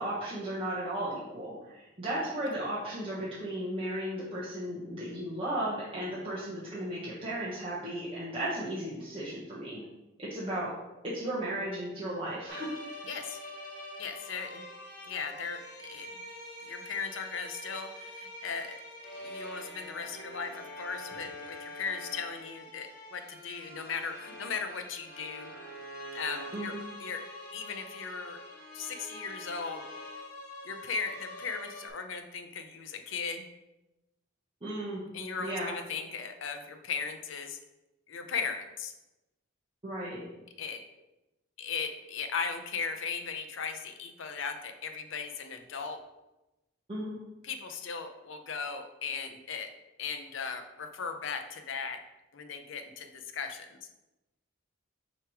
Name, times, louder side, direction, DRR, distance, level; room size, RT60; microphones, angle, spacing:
voice 1, 0.0-9.8 10.2-10.7 11.0-12.7 26.5-26.8 34.6-35.0 35.4-35.7 39.8-40.2 46.9-47.2, right 1 dB, 25° right, -9 dB, 1.1 m, -35 dB
sound 1, 12.5-31.9, left 1 dB, 50° left, 1.4 m, -45 dB
voice 2, 13.0-13.4 14.0-14.6 15.1-16.1 16.6-18.8 19.2-25.5 26.1-26.7 27.0-27.3 27.5-28.4 28.7-29.8 30.6-33.4 35.1-37.6 38.1-38.9 40.6-40.8 41.6-46.0 47.4-49.7 50.0-52.0 52.3-53.7, left 5 dB, 70° left, 6 dB, 0.6 m, -37 dB
6.7 x 3.1 x 4.7 m, 1.0 s
head